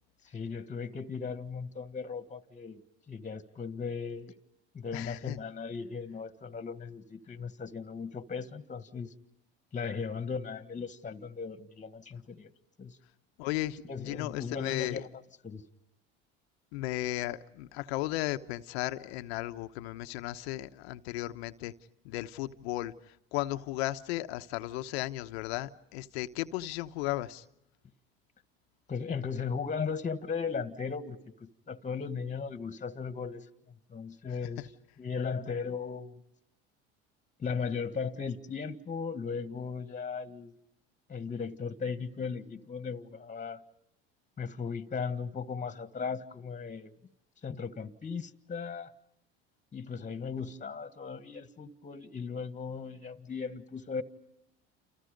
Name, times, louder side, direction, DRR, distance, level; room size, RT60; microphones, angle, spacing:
voice 1, 0.3-2.8 3.1-4.3 4.7-9.1 9.7-12.5 12.8-13.0 13.9-15.1 15.4-15.6 28.9-33.5 33.9-34.6 35.0-36.2 37.4-40.5 41.1-43.6 44.4-46.9 47.4-48.9 49.7-54.0, left 5 dB, 25° left, 1.7 m, -37 dB
voice 2, 4.9-5.4 13.4-15.0 16.7-21.7 22.0-27.4 34.3-34.4, left 16 dB, 80° left, 1.1 m, -35 dB
30.0 x 28.5 x 5.3 m
hypercardioid pair, 85°, 32 cm